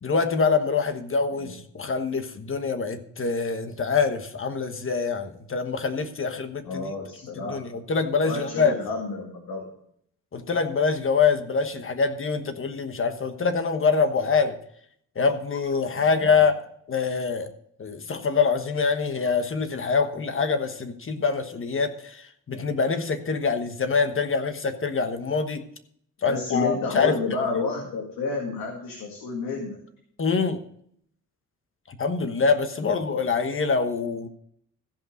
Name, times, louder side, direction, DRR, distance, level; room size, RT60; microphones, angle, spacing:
voice 1, 0.0-6.9 7.4-8.8 10.3-14.6 15.1-16.5 16.9-17.5 17.8-25.6 26.2-27.2 30.2-30.6 31.9-34.3, left 5 dB, 40° left, 9 dB, 1.3 m, -25 dB
voice 2, 6.6-7.6 8.2-9.7 16.0-16.4 26.3-29.8 32.8-33.2, left 4 dB, 90° left, 0 dB, 2.1 m, -30 dB
15.0 x 5.4 x 6.4 m, 0.67 s
cardioid pair, 85°, 32 cm